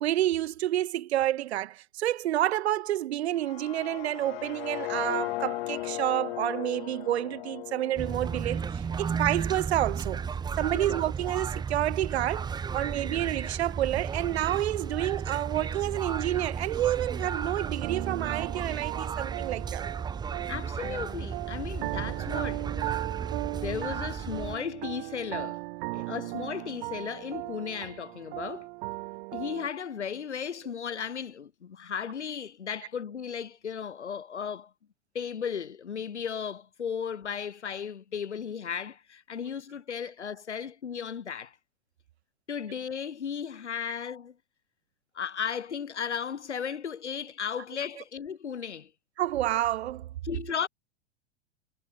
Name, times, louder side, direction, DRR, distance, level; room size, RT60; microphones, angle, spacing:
voice 1, 0.0-10.2 10.6-19.8 49.2-50.1, right 13 dB, 70° right, 1.4 m, -29 dB
sound 1, 3.3-9.3, left 18 dB, 60° left, 4.1 m, -37 dB
sound 2, 8.0-24.6, right 6 dB, 10° right, 0.7 m, -34 dB
sound 3, 17.6-29.7, right 27 dB, 55° right, 3.8 m, -37 dB
voice 2, 20.5-23.1 23.5-25.6 25.9-28.7 29.3-34.7 35.1-41.6 42.5-44.3 45.1-48.9 50.2-50.7, left 7 dB, 85° left, 2.4 m, -35 dB
hypercardioid pair, 100°, 34 cm